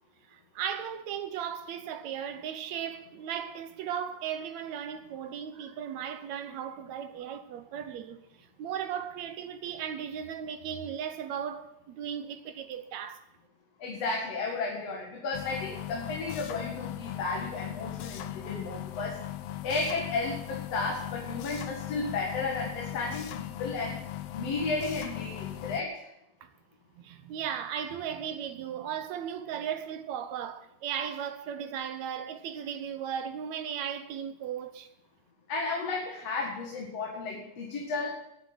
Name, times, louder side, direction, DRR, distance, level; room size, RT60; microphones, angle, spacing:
voice 1, 0.3-8.2 8.6-13.2 27.0-34.9, right 8 dB, 70° right, 2.0 m, -36 dB
voice 2, 13.8-19.2 19.6-24.0 24.3-26.1 35.5-38.2, left 3 dB, 55° left, 2.8 m, -33 dB
sound 1, 15.3-25.8, left 12 dB, 80° left, 1.3 m, -39 dB
10.5 x 10.5 x 7.8 m
omnidirectional pair, 3.6 m